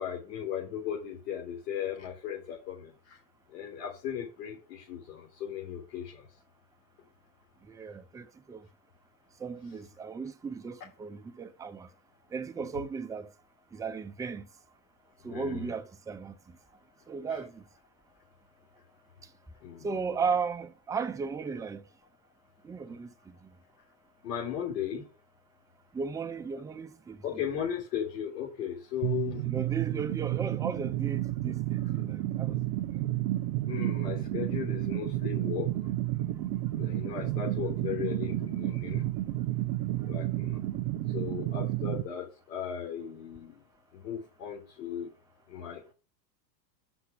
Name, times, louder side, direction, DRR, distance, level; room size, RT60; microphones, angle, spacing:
voice 1, 0.0-3.2 3.5-6.3 15.3-15.7 17.3-17.4 19.6-19.9 24.2-25.1 27.2-29.5 33.7-35.7 36.8-39.0 40.1-40.6 41.1-43.6 43.9-45.1 45.5-45.9, left 9 dB, 70° left, 3.8 m, -36 dB
voice 2, 7.7-8.6 9.4-11.9 12.3-13.3 13.7-14.5 15.2-16.3 17.1-17.6 19.8-21.8 22.6-23.3 25.9-27.2 29.5-32.6, right 5 dB, 5° right, 0.5 m, -35 dB
sound 1, 29.0-42.0, right 15 dB, 55° right, 0.9 m, -31 dB
6.1 x 5.8 x 6.8 m
hypercardioid pair, 110°, 49 cm